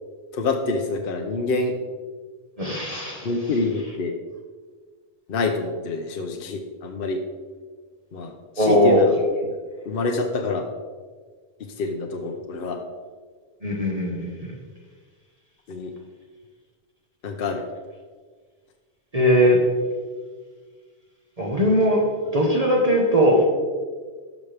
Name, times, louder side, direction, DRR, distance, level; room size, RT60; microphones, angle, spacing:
voice 1, 0.3-1.8 3.2-4.1 5.3-7.2 8.1-9.2 9.4-9.6 9.8-10.7 11.6-12.8 15.7-15.9 17.2-17.7, left 3 dB, 60° left, 3 dB, 0.9 m, -27 dB
voice 2, 2.6-3.3 8.6-9.0 13.6-14.3 19.1-19.6 21.4-23.5, equal, 35° right, -2 dB, 1.2 m, -19 dB
12.0 x 6.2 x 3.4 m, 1.5 s
omnidirectional pair, 1.1 m